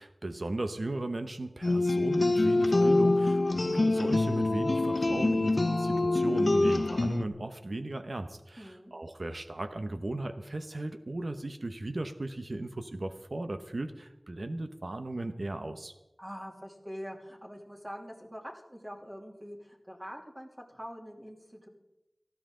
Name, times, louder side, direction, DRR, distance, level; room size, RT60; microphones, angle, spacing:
voice 1, 0.0-15.9, right 2 dB, 65° right, 8 dB, 0.9 m, -36 dB
sound 1, 1.6-7.2, left 2 dB, 60° left, 0.6 m, -25 dB
voice 2, 8.6-8.9 16.2-21.7, equal, 20° right, -1 dB, 2.9 m, -44 dB
18.0 x 14.0 x 3.8 m, 0.98 s
wide cardioid pair, 50°, 0 cm